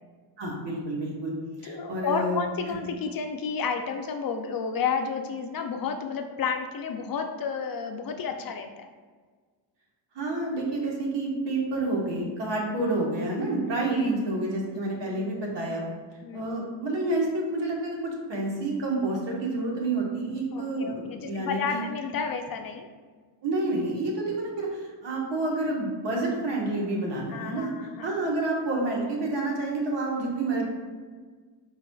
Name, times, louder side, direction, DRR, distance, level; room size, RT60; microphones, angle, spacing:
voice 1, 0.4-1.3 1.6-2.4 10.1-15.8 16.3-21.8 23.4-27.7 28.0-30.6, right 2 dB, 60° right, -2 dB, 1.3 m, -29 dB
voice 2, 1.6-8.9 13.6-14.1 15.1-15.4 16.2-16.4 20.5-22.9 27.3-28.1, left 6 dB, 50° left, 5 dB, 0.4 m, -31 dB
4.6 x 3.9 x 2.3 m, 1.5 s
cardioid pair, 90°, 48 cm